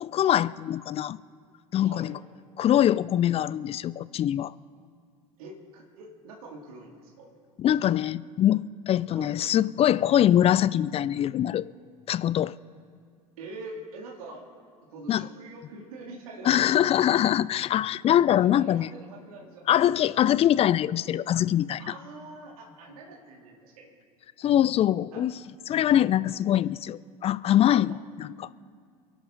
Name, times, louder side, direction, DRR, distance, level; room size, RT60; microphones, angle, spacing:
voice 1, 0.0-1.2 1.7-2.2 2.6-4.5 7.6-11.6 12.1-12.5 15.1-15.3 16.5-18.9 19.7-21.8 24.4-25.3 25.7-28.3, left 11 dB, 30° left, 19 dB, 0.4 m, -23 dB
voice 2, 1.8-2.2 5.4-7.3 9.1-9.3 13.4-14.4 14.9-16.7 17.5-17.6 18.3-20.2 21.8-23.9 25.1-25.3, right 2 dB, 70° right, 0 dB, 2.6 m, -44 dB
28.5 x 11.0 x 3.9 m, 2.1 s
hypercardioid pair, 75°, 19 cm